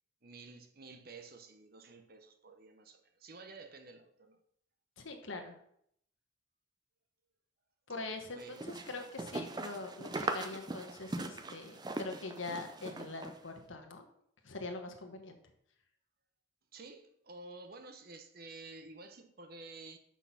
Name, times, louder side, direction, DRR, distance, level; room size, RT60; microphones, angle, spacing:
voice 1, 0.2-4.4 8.3-8.6 16.7-20.0, right 3 dB, 50° right, 7 dB, 0.9 m, -51 dB
voice 2, 5.0-5.6 7.9-14.1 14.4-15.4, left 3 dB, 75° left, 5 dB, 1.2 m, -43 dB
sound 1, 8.4-13.4, right 2 dB, 20° right, 0.5 m, -40 dB
6.1 x 5.9 x 5.7 m, 0.70 s
head